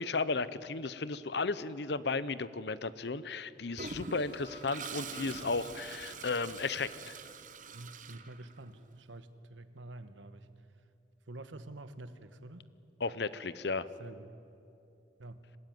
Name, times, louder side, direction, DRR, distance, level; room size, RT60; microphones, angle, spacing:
voice 1, 0.0-7.2 13.0-13.9, left 4 dB, 60° left, 15 dB, 0.8 m, -34 dB
Toilet flush, 3.8-8.8, right 5 dB, 40° right, 0.9 m, -45 dB
voice 2, 7.7-10.5 11.3-12.6 14.0-14.3 15.2-15.5, right 2 dB, 80° right, 11 dB, 1.2 m, -48 dB
26.0 x 15.5 x 9.3 m, 2.7 s
head